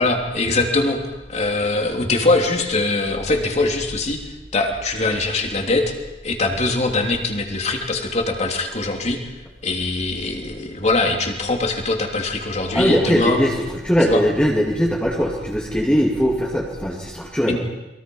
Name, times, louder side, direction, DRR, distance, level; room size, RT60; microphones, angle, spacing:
voice 1, 0.0-4.2 4.5-5.9 6.2-9.2 9.6-13.4 14.1-14.2 17.5-17.6, left 2 dB, 40° left, 3 dB, 3.2 m, -22 dB
voice 2, 12.7-13.6 13.8-17.6, equal, 5° left, -2 dB, 2.5 m, -20 dB
29.5 x 22.5 x 5.6 m, 1.0 s
head